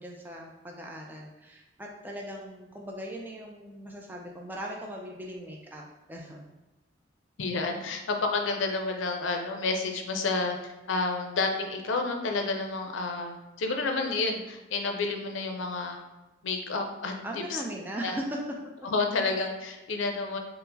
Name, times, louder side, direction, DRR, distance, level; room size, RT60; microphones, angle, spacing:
voice 1, 0.0-5.8 6.1-6.5 17.2-18.4, right 1 dB, 10° right, -1 dB, 0.3 m, -39 dB
voice 2, 7.4-16.0 16.4-17.1 17.5-17.6 18.0-18.1 18.8-20.4, left 3 dB, 80° left, 4 dB, 0.5 m, -30 dB
4.5 x 2.0 x 3.9 m, 1.1 s
head